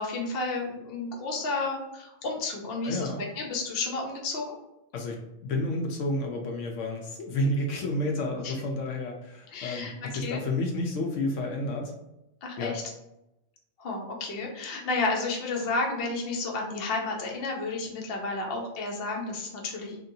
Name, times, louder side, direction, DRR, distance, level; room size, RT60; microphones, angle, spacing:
voice 1, 0.0-3.1 3.4-4.6 8.4-8.5 9.5-10.4 12.4-12.8 13.8-20.0, left 3 dB, 55° left, 0 dB, 0.8 m, -31 dB
voice 2, 2.8-3.2 4.9-11.9 12.6-12.8, left 1 dB, 80° left, 1 dB, 1.0 m, -30 dB
2.9 x 2.7 x 2.6 m, 0.88 s
omnidirectional pair, 1.3 m